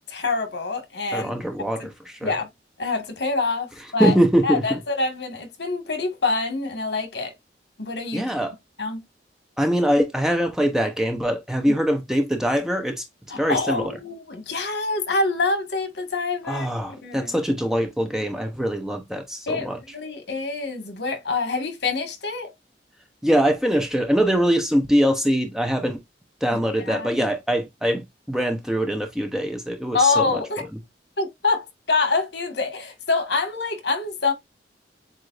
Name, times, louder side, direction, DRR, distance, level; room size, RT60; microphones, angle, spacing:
voice 1, 0.1-1.4 2.2-2.5 2.8-4.1 4.4-7.3 7.8-8.3 8.8-9.0 11.7-11.8 13.3-16.7 17.0-17.3 19.5-22.5 26.5-27.1 29.9-30.7 31.2-34.3, left 3 dB, 80° left, 1.6 m, -26 dB
voice 2, 1.1-2.3 4.0-4.8 8.1-8.5 9.6-13.0 13.4-13.9 16.5-19.8 23.2-26.0 26.4-30.4, equal, 5° right, 0.7 m, -23 dB
7.8 x 2.6 x 2.4 m
head